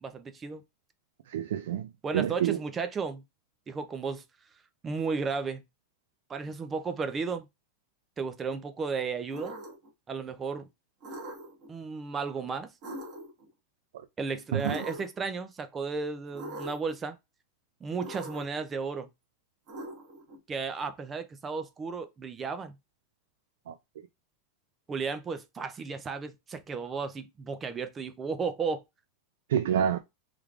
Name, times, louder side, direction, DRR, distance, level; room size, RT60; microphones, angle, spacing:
voice 1, 0.0-0.6 2.0-3.2 3.7-4.2 4.8-5.6 6.3-7.5 8.2-9.6 10.1-10.7 11.7-12.7 14.2-17.2 17.8-19.1 20.5-22.8 24.9-28.8, right 5 dB, 15° right, 0.3 m, -34 dB
voice 2, 1.3-2.6 14.5-14.7 23.7-23.8 29.5-30.0, right 9 dB, 80° right, 0.4 m, -28 dB
sound 1, 9.3-9.9 11.0-11.7 12.8-13.5 14.6-15.3 16.3-16.9 18.0-18.6 19.7-20.4, right 1 dB, 30° right, 1.2 m, -41 dB
3.5 x 3.2 x 2.4 m
supercardioid pair, 175°, 0 cm